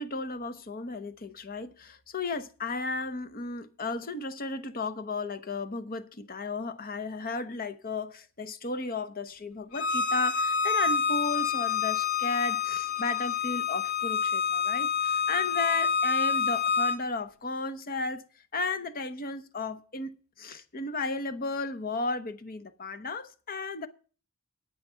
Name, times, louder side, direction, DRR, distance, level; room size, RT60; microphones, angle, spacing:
voice 1, 0.0-18.2 18.5-23.9, left 3 dB, 40° left, 0.9 m, -34 dB
Bowed string instrument, 9.7-17.0, left 6 dB, 80° left, 1.2 m, -27 dB
9.1 x 8.9 x 5.6 m
head